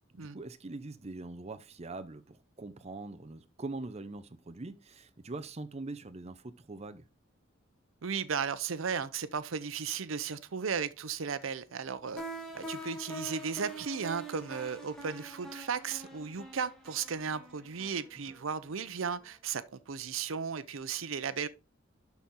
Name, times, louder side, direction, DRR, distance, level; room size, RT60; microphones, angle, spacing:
voice 1, 0.2-7.0, right 2 dB, 35° right, 0.7 m, -43 dB
voice 2, 8.0-12.2 12.5-21.5, right 6 dB, 85° right, 0.7 m, -35 dB
sound 1, 12.2-18.9, right 1 dB, 5° left, 2.4 m, -45 dB
12.0 x 4.3 x 3.7 m
head